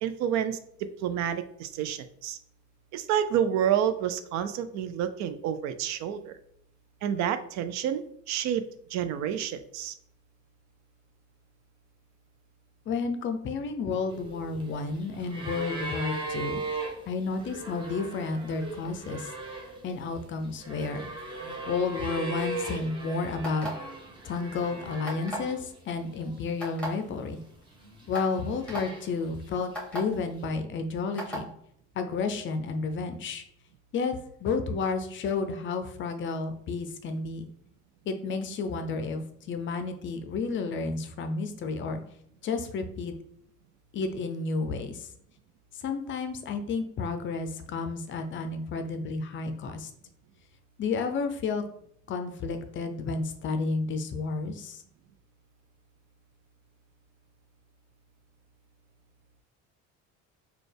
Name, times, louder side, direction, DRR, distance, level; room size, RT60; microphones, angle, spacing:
voice 1, 0.0-2.4 2.9-6.4 7.0-8.6 8.9-9.9, right 9 dB, 70° right, 11 dB, 0.4 m, -29 dB
voice 2, 12.9-16.6 17.1-19.3 19.8-21.1 21.7-23.7 24.2-27.4 28.1-31.5 32.0-33.4 33.9-37.5 38.1-42.0 42.4-43.1 43.9-45.1 45.8-49.9 50.8-51.6 52.1-54.8, left 4 dB, 40° left, 7 dB, 0.5 m, -31 dB
sound 1, 14.1-25.8 26.1-27.0 27.7-29.4 30.5-30.6, right 2 dB, 15° right, 0.8 m, -38 dB
sound 2, 23.4-23.9 25.0-25.5 26.6-26.9 27.6-27.7 28.1-28.3 28.7-28.8 29.7-30.0 31.2-31.4, equal, 5° left, 1.4 m, -34 dB
4.0 x 2.3 x 3.3 m, 0.70 s
cardioid pair, 120°, 29 cm